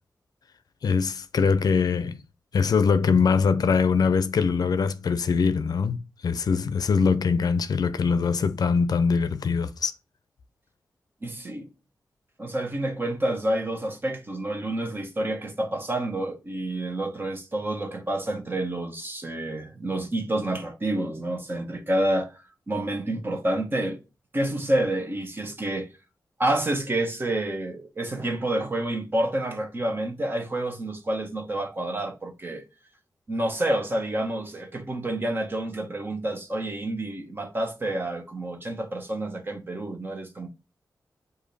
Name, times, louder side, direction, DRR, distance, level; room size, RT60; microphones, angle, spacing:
voice 1, 0.8-2.2 2.5-9.9, left 5 dB, 70° left, 0.5 m, -23 dB
voice 2, 11.2-11.7 12.4-22.4 22.7-24.0 24.3-25.9 26.4-32.6 33.3-40.5, right 1 dB, 30° right, 1.0 m, -28 dB
4.9 x 2.6 x 4.0 m
wide cardioid pair, 110°, 7 cm